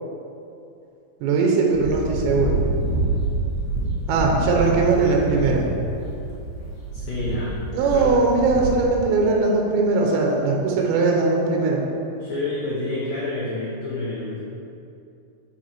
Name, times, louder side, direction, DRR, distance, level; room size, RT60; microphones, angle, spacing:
voice 1, 1.2-2.6 4.1-5.7 7.7-11.8, right 3 dB, 85° right, 0 dB, 2.7 m, -20 dB
sound 1, 1.7-9.0, right 2 dB, 65° left, 0.8 m, -27 dB
voice 2, 6.9-7.6 7.9-8.1 12.2-14.4, left 2 dB, 80° left, -6 dB, 1.6 m, -28 dB
7.7 x 4.0 x 4.4 m, 2.7 s
omnidirectional pair, 4.3 m